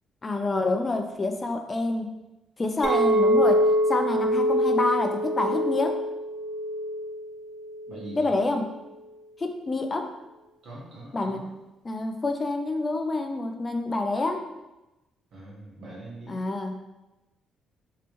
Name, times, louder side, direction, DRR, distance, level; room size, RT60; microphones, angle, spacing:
voice 1, 0.2-2.1 2.6-3.6 3.9-6.0 8.1-8.6 9.4-10.1 11.1-14.5 16.3-16.8, left 2 dB, 30° left, 5 dB, 0.4 m, -27 dB
Chink clink, 2.8-8.1, equal, 35° right, 0.5 m, -24 dB
voice 2, 7.9-8.3 10.6-11.5 15.3-16.4, right 1 dB, 70° right, -6 dB, 1.4 m, -42 dB
3.3 x 2.8 x 3.0 m, 1.0 s
cardioid pair, 90°, 0 cm